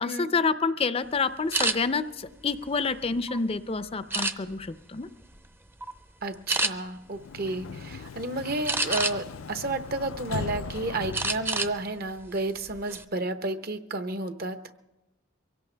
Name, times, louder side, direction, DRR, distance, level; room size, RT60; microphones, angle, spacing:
voice 1, 0.0-5.1, left 4 dB, 30° left, 12 dB, 0.5 m, -28 dB
sound 1, 1.5-1.8 2.4-3.4 4.1-4.7 5.2-5.5 5.8-6.0 6.5-6.7 8.7-9.4 9.9-10.6 11.1-11.7 12.1-12.3 12.7-13.0, right 2 dB, 10° right, 0.6 m, -28 dB
voice 2, 6.2-14.6, right 2 dB, 50° right, 9 dB, 1.0 m, -31 dB
Sliding door, 7.1-12.0, left 6 dB, 90° left, 0.4 m, -39 dB
23.5 x 17.0 x 3.4 m, 1.0 s
head